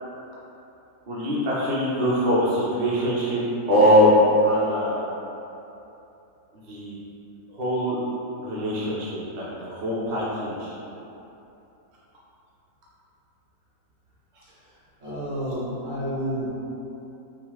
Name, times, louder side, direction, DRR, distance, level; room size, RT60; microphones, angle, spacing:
voice 1, 1.1-3.4 3.7-4.1 4.4-4.9 6.7-7.0 7.5-8.0 8.4-10.7, equal, 45° right, -8 dB, 0.6 m, -22 dB
voice 2, 15.0-16.5, equal, 60° right, -9 dB, 1.5 m, -30 dB
3.0 x 2.7 x 3.9 m, 2.9 s
omnidirectional pair, 1.5 m